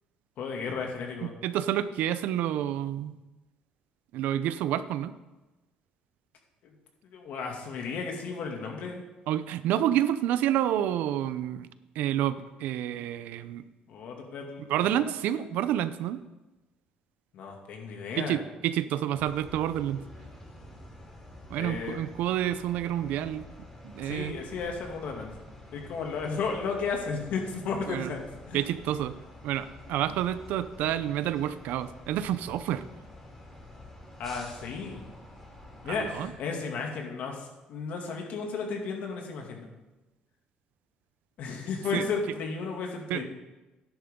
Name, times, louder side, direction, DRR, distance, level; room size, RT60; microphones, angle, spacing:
voice 1, 0.4-1.4 6.6-6.7 7.0-9.0 13.9-15.5 17.3-18.4 21.5-22.0 24.0-25.3 25.7-28.7 34.2-35.1 35.8-39.7 41.4-43.2, left 5 dB, 65° left, 1 dB, 2.4 m, -34 dB
voice 2, 1.4-3.2 4.1-5.1 9.3-11.7 12.0-13.6 14.7-16.2 18.2-18.4 18.6-20.0 21.5-23.4 23.8-24.3 27.9-28.1 28.5-29.1 29.4-32.8 35.9-36.3 41.9-42.0 43.1-43.2, right 11 dB, 80° right, 13 dB, 0.6 m, -29 dB
sound 1, 19.1-36.3, left 1 dB, 10° left, 3.1 m, -48 dB
12.5 x 10.5 x 3.8 m, 1.1 s
cardioid pair, 115°, 3 cm